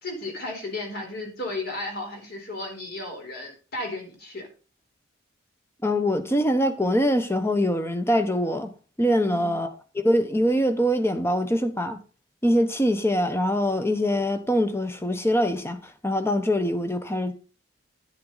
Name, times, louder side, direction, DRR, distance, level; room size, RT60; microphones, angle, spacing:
voice 1, 0.0-4.5 9.2-9.5, left 2 dB, 50° left, 4.1 m, -34 dB
voice 2, 5.8-8.7 9.0-9.7 9.9-12.0 12.4-17.3, equal, 10° left, 1.0 m, -23 dB
10.5 x 9.9 x 4.0 m
head